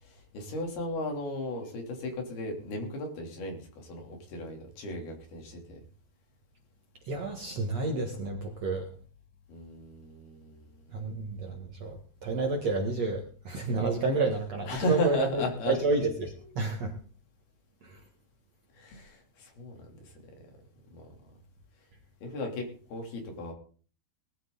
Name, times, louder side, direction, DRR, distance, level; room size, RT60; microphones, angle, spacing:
voice 1, 0.0-5.8 9.5-10.9 14.6-15.7 18.7-20.1 20.9-21.1 22.2-23.5, left 1 dB, 65° left, 3 dB, 4.9 m, -35 dB
voice 2, 7.1-8.9 10.9-16.9 17.8-18.0, right 3 dB, 55° right, 2 dB, 2.0 m, -30 dB
20.0 x 12.5 x 3.9 m, 0.41 s
omnidirectional pair, 4.9 m